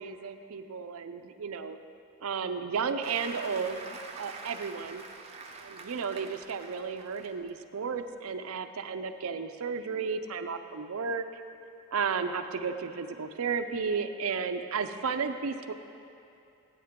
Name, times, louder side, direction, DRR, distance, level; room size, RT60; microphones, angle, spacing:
voice 1, 0.0-1.8 2.2-3.8 4.1-5.0 5.5-11.4 11.9-15.7, right 5 dB, 80° right, 9 dB, 0.5 m, -33 dB
Applause, 3.0-7.5 8.0-8.2, right 4 dB, 30° right, 0.6 m, -46 dB
14.0 x 8.4 x 3.7 m, 2.7 s
head